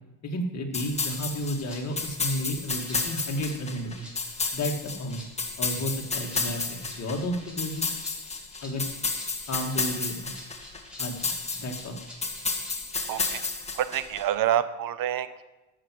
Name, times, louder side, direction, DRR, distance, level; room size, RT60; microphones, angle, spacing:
voice 1, 0.2-4.1 4.5-5.2 5.6-7.9 8.6-8.8 9.5-10.3 11.0-12.0, equal, 35° left, 1 dB, 2.2 m, -32 dB
sound 1, 0.7-14.2, left 3 dB, 15° left, 1.5 m, -32 dB
Rattle (instrument), 1.0-13.5, left 1 dB, ahead, 3.8 m, -50 dB
voice 2, 13.1-13.4 13.8-15.4, right 11 dB, 50° right, 13 dB, 0.9 m, -27 dB
13.5 x 6.2 x 7.7 m, 1.1 s
cardioid pair, 120°, 43 cm